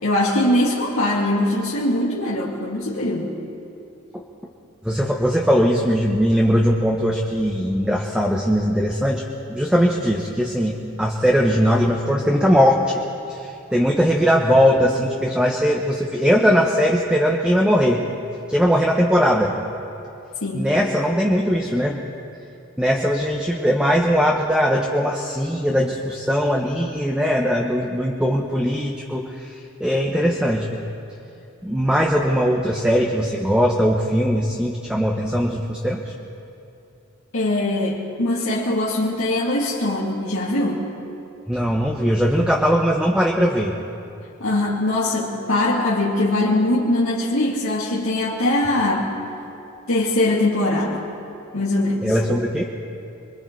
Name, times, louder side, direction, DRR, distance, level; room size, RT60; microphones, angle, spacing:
voice 1, 0.0-3.4 20.4-20.7 37.3-40.9 44.4-49.1 49.9-51.1 51.5-52.1, left 1 dB, 80° left, -6 dB, 2.4 m, -21 dB
voice 2, 4.8-9.2 9.5-12.8 13.3-18.0 18.5-19.5 20.5-22.0 22.8-30.8 31.6-36.0 41.5-43.7 52.0-52.6, equal, 5° right, -1 dB, 1.0 m, -20 dB
27.0 x 22.5 x 4.7 m, 2.7 s
head